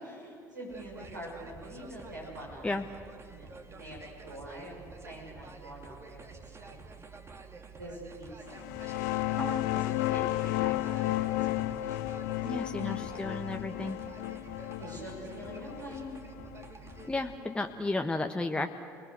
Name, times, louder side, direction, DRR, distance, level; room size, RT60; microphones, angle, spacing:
voice 1, 0.0-2.9 3.3-4.8 5.0-6.8 7.7-9.1 9.6-9.8 10.1-12.9 14.8-16.1, equal, 90° right, -4 dB, 7.3 m, -45 dB
sound 1, 0.7-17.4, right 4 dB, 25° right, 2.5 m, -49 dB
sound 2, 8.5-17.8, left 17 dB, 70° left, 0.7 m, -33 dB
voice 2, 12.4-14.0 17.1-18.7, left 2 dB, 10° left, 4 dB, 1.3 m, -33 dB
29.5 x 20.5 x 8.1 m, 2.4 s
figure-of-eight pair, 60°, 10 cm